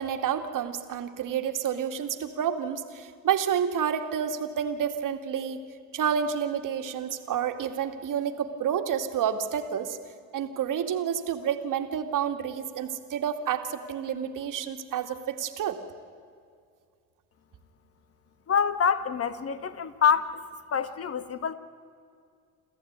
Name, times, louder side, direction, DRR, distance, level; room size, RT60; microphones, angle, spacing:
voice 1, 0.0-5.6 5.9-10.0 10.3-15.8, right 8 dB, 50° right, 6 dB, 2.4 m, -29 dB
voice 2, 18.5-20.4 20.7-21.5, left 7 dB, 35° left, 12 dB, 1.7 m, -26 dB
28.0 x 14.5 x 9.6 m, 2.2 s
supercardioid pair, 90°, 42 cm